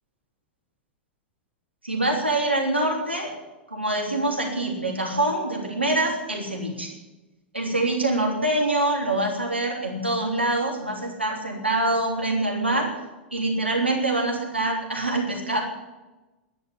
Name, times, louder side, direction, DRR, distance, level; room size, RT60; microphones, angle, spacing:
voice 1, 1.8-3.3 3.7-6.9 7.5-12.9 13.3-15.6, right 2 dB, 85° right, 0 dB, 3.3 m, -25 dB
12.5 x 10.0 x 9.8 m, 1.1 s
figure-of-eight pair, 95°, 6 cm